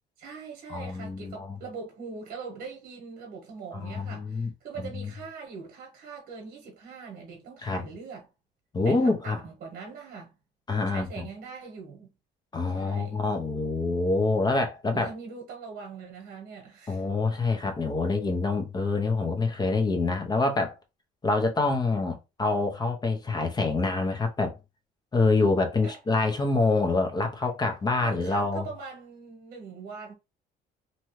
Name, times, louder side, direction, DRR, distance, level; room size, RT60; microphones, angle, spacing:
voice 1, 0.2-8.3 8.8-10.3 10.9-12.1 12.7-13.2 14.9-17.1 25.8-26.0 28.0-30.1, right 5 dB, 65° right, 1.0 m, -42 dB
voice 2, 0.7-1.6 3.7-4.5 4.9-5.1 7.6-7.8 8.7-9.4 10.7-11.3 12.5-15.1 16.9-20.8 21.2-24.6 25.1-28.7, left 3 dB, 25° left, 0.7 m, -26 dB
2.7 x 2.3 x 3.1 m
cardioid pair, 110°, 17 cm